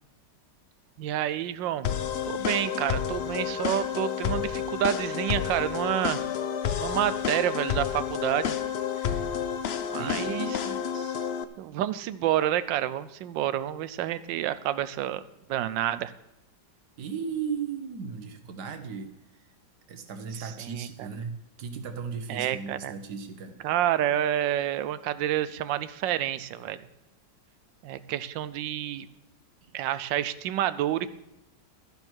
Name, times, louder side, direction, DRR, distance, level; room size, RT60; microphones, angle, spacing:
voice 1, 1.0-1.9 2.3-6.2 6.8-8.6 9.0-9.2 9.9-10.6 10.9-11.1 11.6-15.2 15.5-16.1 20.4-21.1 22.3-22.9 23.6-26.8 27.8-29.1 29.7-31.1, right 12 dB, 85° right, 16 dB, 1.3 m, -29 dB
sound 1, 1.8-11.4, left 8 dB, 85° left, 0.5 m, -30 dB
voice 2, 10.0-10.8 17.0-19.1 19.9-23.6, right 6 dB, 65° right, 9 dB, 1.6 m, -36 dB
12.0 x 11.0 x 4.6 m, 0.90 s
omnidirectional pair, 2.0 m